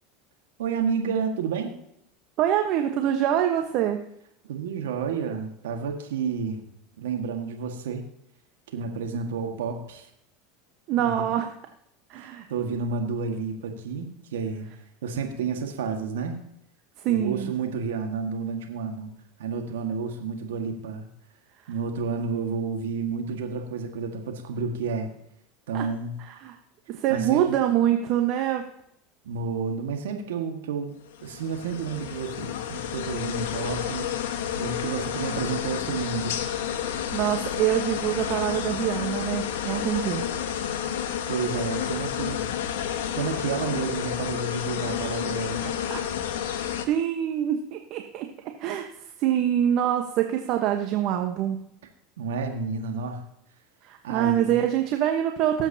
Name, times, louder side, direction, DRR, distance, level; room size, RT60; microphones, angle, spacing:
voice 1, 0.6-1.7 4.4-6.6 7.0-8.0 8.7-10.1 11.0-11.2 12.1-14.7 15.0-16.4 17.1-19.1 19.4-21.1 21.7-25.1 25.7-26.1 27.1-27.4 29.2-30.9 31.2-34.1 34.6-36.4 41.3-42.5 43.1-45.6 52.2-53.2 54.0-54.6, right 5 dB, 80° right, 3 dB, 1.7 m, -30 dB
voice 2, 2.4-4.0 10.9-11.5 12.1-12.5 17.0-17.5 25.7-25.9 26.4-26.6 26.9-28.7 37.1-40.5 45.6-46.0 46.9-48.3 48.6-48.8 49.2-51.7 53.8-55.7, right 11 dB, 55° right, 5 dB, 1.1 m, -25 dB
sound 1, 31.1-46.8, left 9 dB, 75° left, 1.2 m, -30 dB
19.5 x 8.0 x 2.8 m, 0.74 s
hypercardioid pair, 90°, 0 cm